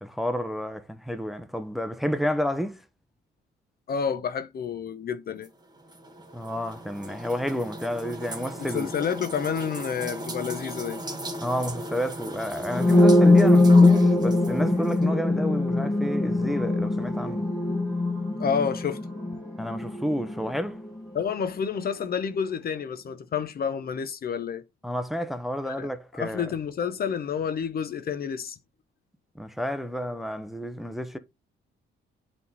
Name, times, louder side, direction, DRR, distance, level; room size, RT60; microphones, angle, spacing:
voice 1, 0.0-2.8 6.3-8.9 11.4-17.5 19.6-20.8 24.8-26.5 29.4-31.2, equal, ahead, 0.8 m, -30 dB
voice 2, 3.9-5.5 8.6-11.0 18.4-19.0 21.1-24.6 25.6-28.6, left 7 dB, 50° left, 0.8 m, -29 dB
sound 1, 5.4-15.0, right 1 dB, 20° right, 1.7 m, -38 dB
sound 2, 12.7-20.5, left 2 dB, 15° left, 2.0 m, -21 dB
8.4 x 3.6 x 4.0 m
cardioid pair, 90°, 20 cm